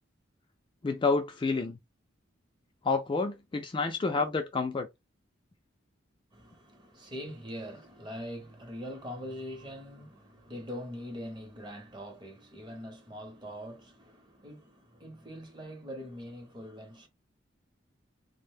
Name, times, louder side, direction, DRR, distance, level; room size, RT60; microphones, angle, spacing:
voice 1, 0.8-1.8 2.8-4.9, left 4 dB, 25° left, 0.3 m, -29 dB
voice 2, 6.3-17.1, equal, 25° right, 0.7 m, -43 dB
2.5 x 2.1 x 3.3 m
head